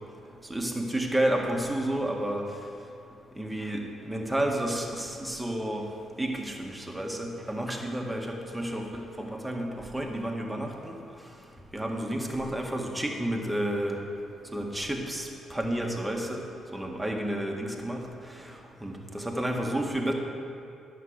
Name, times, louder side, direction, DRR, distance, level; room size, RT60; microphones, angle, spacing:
voice 1, 0.5-2.5 3.4-5.9 6.2-11.0 11.7-14.0 14.5-16.4 16.7-18.0 18.3-18.4 18.8-20.1, right 1 dB, 10° right, 1 dB, 1.7 m, -31 dB
10.5 x 6.8 x 6.5 m, 2.5 s
supercardioid pair, 55°, 0 cm